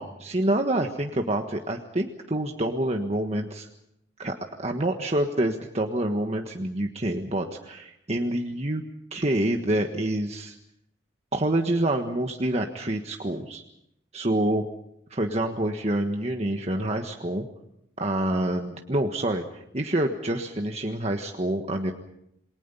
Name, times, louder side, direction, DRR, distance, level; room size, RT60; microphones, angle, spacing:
voice 1, 0.0-3.7 4.2-8.8 9.1-10.5 11.3-13.6 14.1-14.6 15.1-17.5 18.0-21.9, right 1 dB, 40° right, 3 dB, 1.5 m, -27 dB
28.5 x 22.0 x 5.6 m, 0.78 s
head